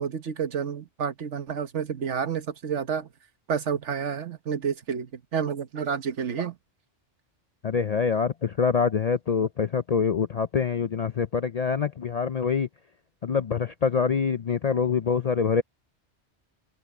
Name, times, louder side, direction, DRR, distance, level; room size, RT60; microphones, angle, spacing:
voice 1, 0.0-3.1 3.5-6.6, right 7 dB, 80° right, 1.4 m, -30 dB
voice 2, 7.6-12.7 13.2-15.6, left 6 dB, 50° left, 0.4 m, -25 dB
open air
omnidirectional pair, 1.2 m